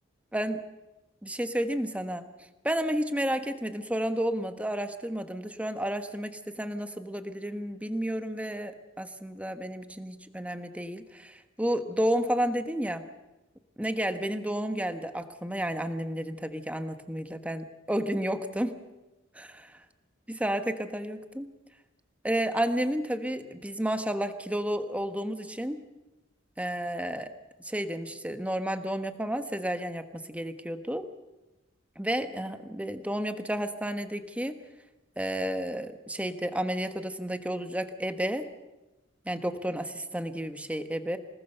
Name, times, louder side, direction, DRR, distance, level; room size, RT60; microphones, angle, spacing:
voice 1, 0.3-0.6 1.2-2.3 2.6-13.0 13.8-18.8 19.3-19.5 20.3-21.5 22.2-25.8 26.6-27.3 27.6-31.1 32.0-34.6 35.2-38.5 39.2-41.2, right 1 dB, 5° right, 8 dB, 1.3 m, -31 dB
26.5 x 19.0 x 6.8 m, 1.0 s
head